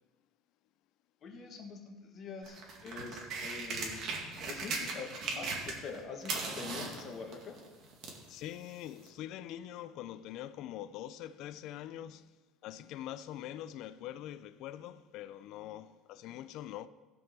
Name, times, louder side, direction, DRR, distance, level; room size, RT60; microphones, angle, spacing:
voice 1, 1.2-2.6 2.8-4.0 4.5-7.6, left 4 dB, 35° left, 1.6 m, -44 dB
sound 1, 2.4-6.0 6.2-8.3 9.1-9.2, right 4 dB, 50° right, 2.1 m, -38 dB
voice 2, 8.3-12.3 12.6-16.9, left 12 dB, 55° left, 0.4 m, -44 dB
15.5 x 5.4 x 5.9 m
cardioid pair, 145°, 0 cm